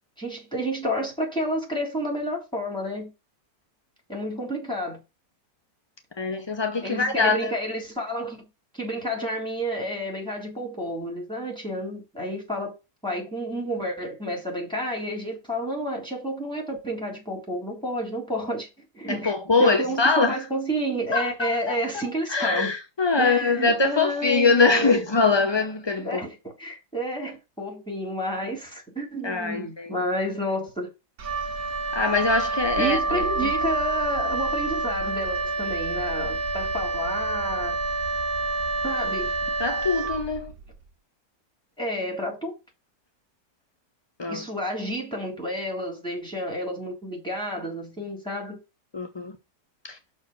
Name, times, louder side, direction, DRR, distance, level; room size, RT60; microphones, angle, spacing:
voice 1, 0.2-3.1 4.1-5.0 6.8-8.4 8.7-12.7 13.0-18.7 18.9-19.3 19.6-22.7 23.2-25.0 26.0-30.9 32.8-37.7 38.8-39.4 41.8-42.5 44.3-48.6, equal, 5° left, 3.7 m, -30 dB
voice 2, 6.2-7.5 19.1-20.4 21.1-26.2 29.2-30.0 31.9-33.5 39.6-40.5 44.2-44.5 48.9-49.4 49.8-50.0, left 4 dB, 45° left, 0.3 m, -23 dB
Wind instrument woodwind instrument, 31.2-40.7, right 3 dB, 65° right, 1.8 m, -28 dB
6.3 x 4.5 x 6.0 m
omnidirectional pair, 1.7 m